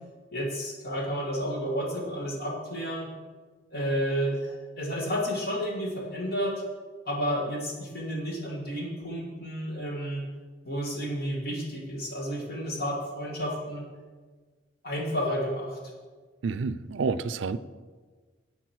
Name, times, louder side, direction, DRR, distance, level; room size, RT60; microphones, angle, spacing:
voice 1, 0.3-3.1 3.7-6.6 7.1-10.2 10.6-13.8 14.8-15.8, equal, 55° left, -1 dB, 2.3 m, -31 dB
voice 2, 16.4-17.6, right 4 dB, 75° right, 15 dB, 0.4 m, -29 dB
10.5 x 8.3 x 4.7 m, 1.4 s
head